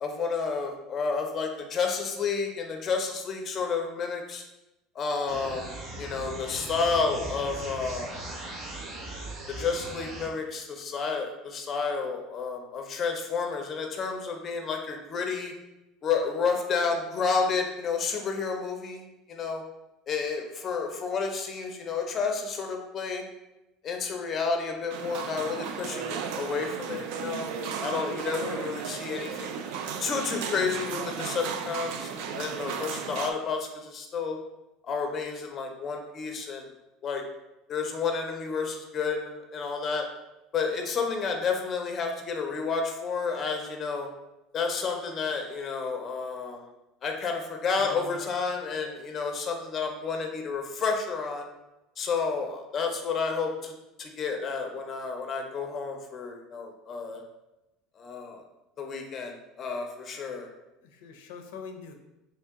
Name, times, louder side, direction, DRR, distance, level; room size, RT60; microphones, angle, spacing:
voice 1, 0.0-4.4 5.0-8.1 9.5-15.5 16.0-19.6 20.1-23.2 23.8-27.6 27.8-29.6 30.0-34.4 34.8-36.7 37.0-37.2 37.7-40.1 40.5-44.1 44.5-46.7 47.0-51.5 52.0-57.2 58.0-58.4 58.8-60.5, left 5 dB, 30° left, 3 dB, 0.5 m, -31 dB
sound 1, 5.3-10.3, right 2 dB, 40° right, 0.7 m, -39 dB
sound 2, 24.9-33.3, right 7 dB, 65° right, 0.3 m, -35 dB
voice 2, 60.4-61.9, left 5 dB, 90° left, 5 dB, 0.4 m, -44 dB
3.0 x 2.7 x 3.5 m, 0.94 s
cardioid pair, 155°, 0 cm